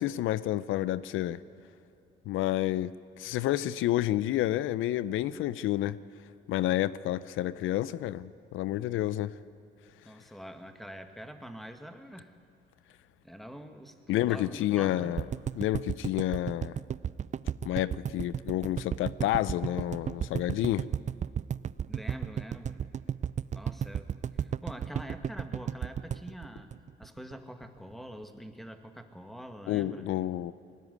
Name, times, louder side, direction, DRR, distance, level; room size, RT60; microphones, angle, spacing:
voice 1, 0.0-1.4 2.3-6.0 6.5-9.3 14.1-15.2 15.5-16.8 17.6-20.9 29.7-30.5, left 14 dB, 85° left, 0.6 m, -29 dB
voice 2, 10.0-12.4 13.2-14.0 14.3-15.2 21.9-22.8 23.5-26.7 27.0-30.1, equal, ahead, 2.0 m, -45 dB
sound 1, 15.2-27.3 27.6-27.7 27.9-28.0, right 8 dB, 35° right, 0.4 m, -33 dB
21.0 x 18.5 x 9.6 m
cardioid pair, 90°, 20 cm